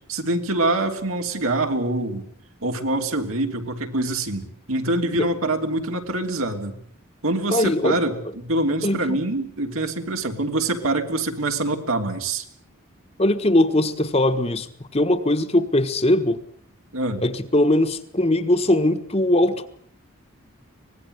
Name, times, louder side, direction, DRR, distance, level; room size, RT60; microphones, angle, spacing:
voice 1, 0.1-2.3 2.6-6.8 7.2-12.4 16.9-17.2, right 2 dB, 75° right, 4 dB, 3.3 m, -25 dB
voice 2, 7.5-8.0 8.8-9.2 13.2-16.4 17.2-19.7, left 1 dB, 30° left, 7 dB, 1.5 m, -20 dB
24.5 x 20.0 x 8.1 m, 0.64 s
head